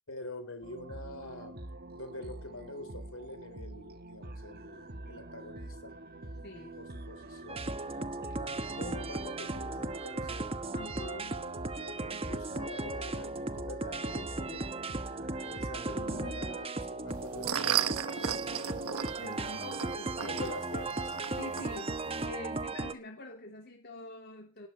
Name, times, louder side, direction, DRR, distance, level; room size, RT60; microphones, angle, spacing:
voice 1, 0.1-1.6 2.0-6.0 6.8-10.5 11.2-14.7 15.4-19.2 19.5-19.6 20.2-21.2, left 2 dB, 65° left, 10 dB, 4.2 m, -46 dB
sound 1, 0.6-16.7, right 1 dB, 45° right, 1.4 m, -46 dB
voice 2, 6.4-6.8 10.7-11.4 15.6-16.4 19.1-20.5 21.3-21.9 22.2-24.7, left 2 dB, 45° left, 2 dB, 3.1 m, -46 dB
sound 2, 7.5-22.9, right 2 dB, 25° right, 1.2 m, -36 dB
sound 3, 17.1-22.3, right 9 dB, 75° right, 1.1 m, -35 dB
19.5 x 7.7 x 8.8 m, 0.38 s
head